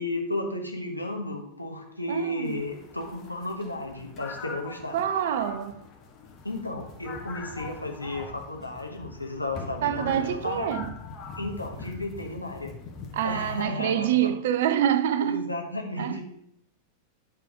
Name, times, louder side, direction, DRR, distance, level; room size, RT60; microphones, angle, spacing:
voice 1, 0.0-5.0 6.4-10.7 11.4-12.7 13.2-14.1 15.2-16.2, left 2 dB, 85° left, 1.1 m, -33 dB
voice 2, 2.1-2.6 4.9-5.9 9.8-10.9 13.1-15.5 16.0-16.2, right 10 dB, 55° right, 0.5 m, -26 dB
sound 1, 2.4-13.6, left 4 dB, 30° left, 1.2 m, -42 dB
8.8 x 3.8 x 4.8 m
figure-of-eight pair, 90°, 0 cm